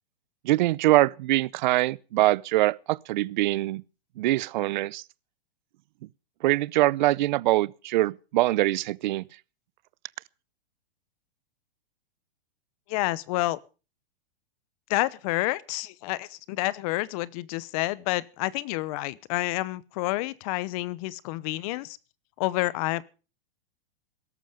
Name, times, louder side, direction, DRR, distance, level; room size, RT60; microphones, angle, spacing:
voice 1, 0.4-3.8 4.2-5.0 6.4-9.3, right 17 dB, 55° right, 0.7 m, -23 dB
voice 2, 12.9-13.6 14.9-22.0 22.4-23.1, left 18 dB, 40° left, 0.9 m, -29 dB
17.5 x 13.5 x 5.0 m
hypercardioid pair, 150°, 29 cm